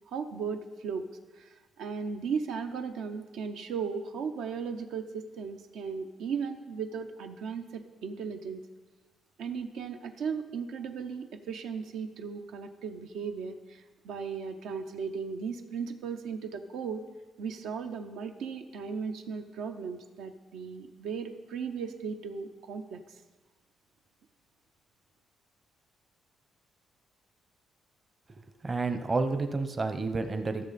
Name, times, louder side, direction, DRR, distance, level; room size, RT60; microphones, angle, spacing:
voice 1, 0.1-1.1 1.3-8.6 9.4-17.0 17.4-23.0, right 6 dB, 80° right, 5 dB, 0.6 m, -36 dB
voice 2, 28.3-30.7, right 3 dB, 30° right, 8 dB, 0.7 m, -30 dB
13.5 x 6.5 x 4.1 m, 1.3 s
cardioid pair, 90°, 0 cm